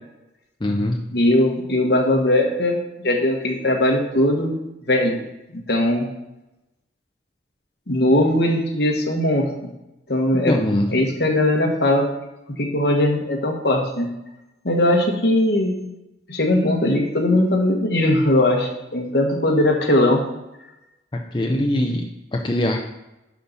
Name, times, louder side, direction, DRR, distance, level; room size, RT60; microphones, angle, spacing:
voice 1, 0.6-1.1 10.5-10.9 21.1-22.8, left 1 dB, 25° left, 2 dB, 0.5 m, -22 dB
voice 2, 1.1-4.6 4.9-5.2 5.7-6.0 7.9-9.7 10.1-10.6 10.9-12.1 12.6-14.1 14.6-15.8 16.3-20.2, left 1 dB, 60° left, 1 dB, 1.4 m, -19 dB
11.0 x 4.0 x 5.7 m, 0.96 s
head